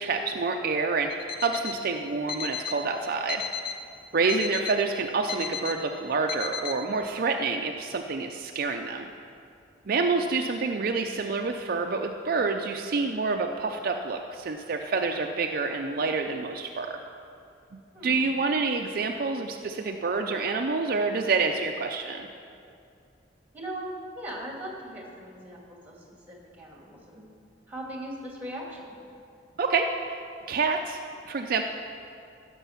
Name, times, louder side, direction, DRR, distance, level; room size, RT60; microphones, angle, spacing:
voice 1, 0.0-3.4 4.1-9.1 9.9-17.0 17.7-22.3 29.6-31.6, right 4 dB, 55° right, 4 dB, 0.5 m, -28 dB
Alarm, 1.1-1.8 2.3-2.8 3.3-3.8 4.3-4.8 5.3-5.8 6.3-6.8, left 7 dB, 55° left, 0.8 m, -34 dB
voice 2, 17.9-18.3 23.5-25.9 26.3-27.2 27.7-29.0, right 1 dB, 10° right, -1 dB, 2.2 m, -39 dB
15.5 x 6.2 x 5.8 m, 2.5 s
head